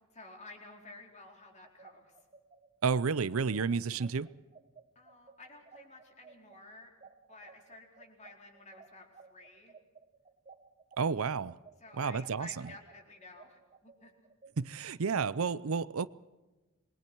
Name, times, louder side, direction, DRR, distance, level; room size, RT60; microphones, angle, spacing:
voice 1, 0.1-2.1 4.9-6.9 7.3-9.8 11.8-14.1, left 2 dB, 35° left, 4.3 m, -53 dB
sound 1, 1.6-11.0 11.4-14.5, right 5 dB, 30° right, 1.4 m, -56 dB
voice 2, 2.8-4.3 11.0-11.6 12.0-12.5 14.6-16.1, right 5 dB, 75° right, 0.6 m, -31 dB
27.5 x 22.0 x 4.6 m
head